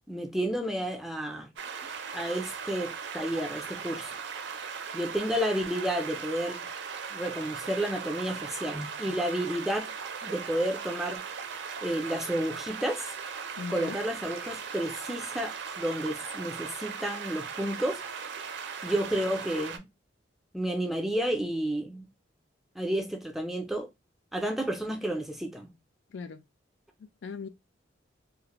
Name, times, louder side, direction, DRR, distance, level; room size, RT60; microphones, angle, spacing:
voice 1, 0.1-1.5 2.1-4.1 4.9-6.6 7.1-9.9 10.2-11.2 11.8-13.0 13.7-18.0 18.8-19.9 20.5-22.1 22.8-23.9 24.3-25.7, right 1 dB, ahead, 0.4 m, -31 dB
sound 1, 1.6-19.8, right 6 dB, 65° right, 0.4 m, -38 dB
voice 2, 13.6-14.0 26.1-26.4 27.0-27.5, left 5 dB, 70° left, 0.4 m, -39 dB
2.5 x 2.1 x 2.9 m
head